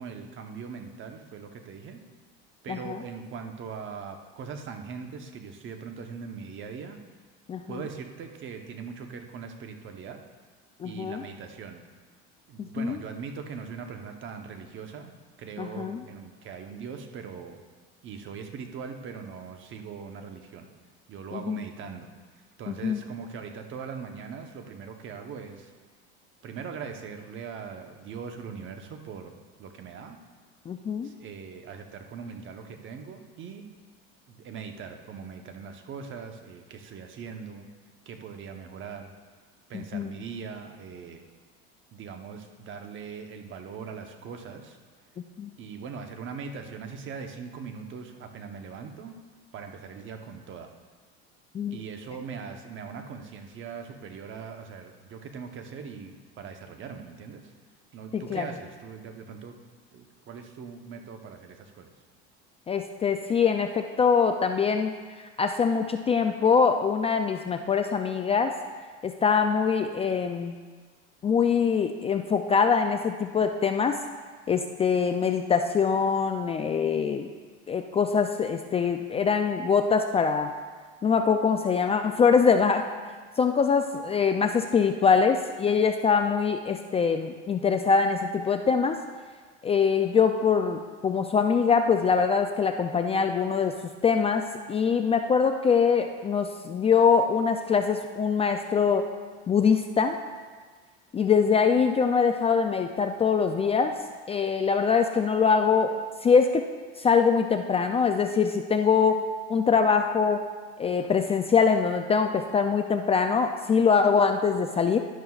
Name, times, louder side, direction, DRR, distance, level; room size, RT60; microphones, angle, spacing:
voice 1, 0.0-2.0 2.6-7.0 7.7-10.2 10.8-11.8 12.5-17.6 18.0-20.7 21.1-22.1 22.6-25.7 26.4-30.2 31.0-33.7 34.3-37.7 38.1-39.1 39.7-41.2 41.9-44.8 45.6-49.2 49.5-50.7 51.7-57.5 57.9-59.6 59.9-61.9, right 6 dB, 45° right, 5 dB, 1.0 m, -40 dB
voice 2, 7.5-7.8 10.8-11.2 12.6-13.0 15.6-16.0 21.3-21.6 22.7-23.0 30.7-31.1 39.7-40.2 45.4-45.5 51.5-51.8 58.1-58.5 62.7-64.9 65.4-68.5 69.0-70.5 71.2-74.0 74.5-77.3 77.7-80.5 81.0-82.9 83.4-89.0 89.6-93.8 94.0-99.1 99.5-100.2 101.1-104.0 104.3-106.6 107.0-109.2 109.5-110.4 110.8-115.0, left 6 dB, 20° left, 6 dB, 0.4 m, -23 dB
11.5 x 11.0 x 2.4 m, 1.5 s
supercardioid pair, 115°, 29 cm